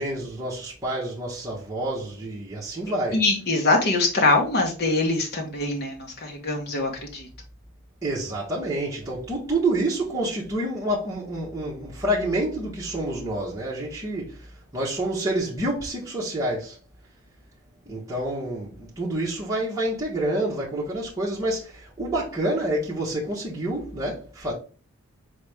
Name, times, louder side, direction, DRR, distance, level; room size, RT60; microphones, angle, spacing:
voice 1, 0.0-3.2 8.0-14.4 14.7-16.8 17.9-24.5, right 1 dB, 15° right, 1.1 m, -28 dB
voice 2, 3.1-7.3, left 2 dB, 45° left, 1.1 m, -23 dB
4.3 x 3.4 x 3.4 m
head